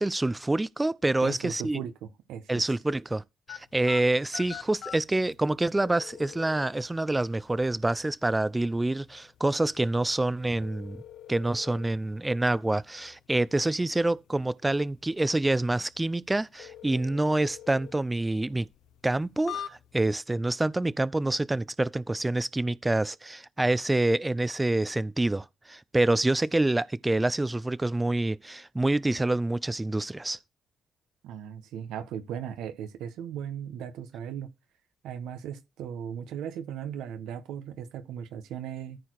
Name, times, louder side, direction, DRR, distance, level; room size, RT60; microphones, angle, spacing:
voice 1, 0.0-1.8 2.5-3.2 3.5-11.0 11.3-18.7 19.0-30.4, right 2 dB, 15° right, 0.5 m, -27 dB
voice 2, 1.2-2.6 31.2-34.5 35.0-39.0, right 9 dB, 90° right, 1.3 m, -37 dB
sound 1, 3.5-20.2, left 9 dB, 75° left, 0.8 m, -47 dB
13.5 x 4.6 x 4.7 m
cardioid pair, 90°, 0 cm